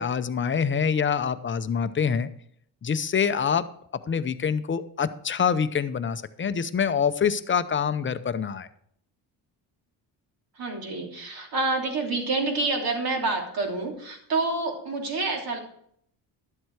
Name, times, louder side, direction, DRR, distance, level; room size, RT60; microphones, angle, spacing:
voice 1, 0.0-2.3 2.8-3.6 4.1-8.7, left 7 dB, 30° left, 12 dB, 0.7 m, -25 dB
voice 2, 10.5-15.6, right 3 dB, 55° right, 1 dB, 3.2 m, -28 dB
12.0 x 7.8 x 4.8 m, 0.67 s
cardioid pair, 110°, 42 cm